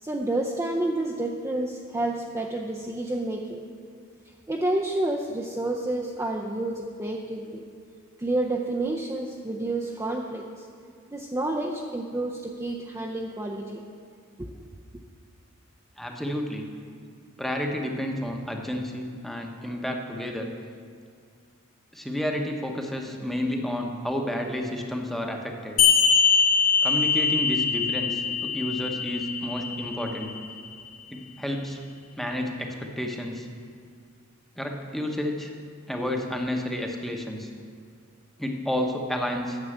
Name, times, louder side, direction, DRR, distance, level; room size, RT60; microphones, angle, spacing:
voice 1, 0.0-3.7 4.5-7.6 8.2-10.7 11.1-13.8 14.4-14.6, right 2 dB, 15° right, -1 dB, 0.5 m, -29 dB
voice 2, 16.0-16.7 17.4-20.5 21.9-25.8 26.8-30.3 31.1-31.8 32.2-33.5 34.6-35.5 35.9-37.5 38.4-39.6, left 1 dB, ahead, 2 dB, 0.9 m, -30 dB
sound 1, 25.8-30.8, left 6 dB, 65° left, 2.9 m, -23 dB
9.6 x 6.8 x 7.8 m, 2.2 s
head